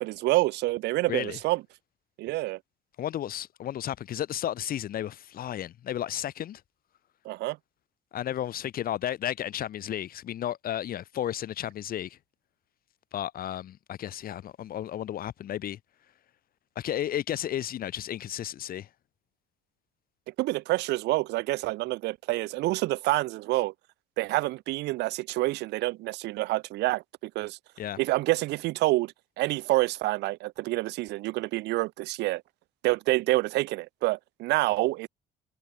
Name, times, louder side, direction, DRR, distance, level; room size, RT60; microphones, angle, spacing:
voice 1, 0.0-1.6 2.2-2.6 7.2-7.6 20.4-23.7 24.2-27.6 28.0-32.4 32.8-35.1, right 19 dB, 90° right, 5.8 m, -27 dB
voice 2, 1.1-1.4 3.0-6.6 8.1-12.2 13.1-15.8 16.7-18.9 27.8-28.0, left 11 dB, 60° left, 4.6 m, -33 dB
cardioid pair, 110°, 17 cm